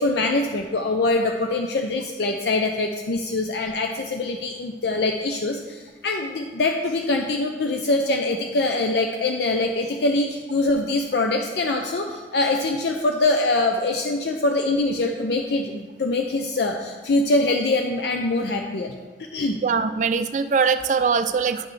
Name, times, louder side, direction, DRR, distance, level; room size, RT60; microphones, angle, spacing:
voice 1, 0.0-18.9 19.3-19.6, left 2 dB, 60° left, 3 dB, 0.5 m, -23 dB
voice 2, 19.6-21.7, right 5 dB, 40° right, 11 dB, 0.3 m, -22 dB
10.5 x 6.0 x 3.2 m, 1.4 s
head